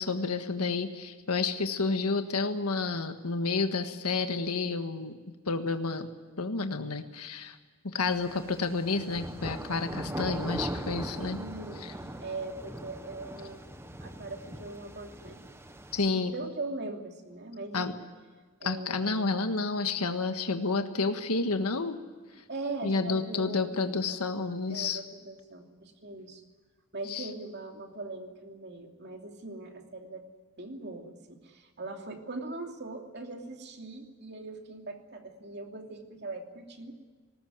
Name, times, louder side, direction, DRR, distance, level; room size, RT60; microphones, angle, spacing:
voice 1, 0.0-5.2 5.5-6.1 6.4-7.6 7.8-11.4 11.8-11.9 15.9-16.3 17.7-17.9 18.6-22.0 22.8-25.0 27.1-27.3, left 3 dB, 90° left, 7 dB, 1.6 m, -30 dB
sound 1, 8.1-16.1, right 1 dB, 10° right, 1.0 m, -40 dB
voice 2, 11.3-13.6 14.0-15.4 16.1-18.0 18.6-19.3 22.5-24.2 24.7-26.4 26.9-30.2 30.6-36.9, right 2 dB, 50° right, 3 dB, 2.8 m, -41 dB
19.5 x 19.0 x 9.5 m, 1.4 s
head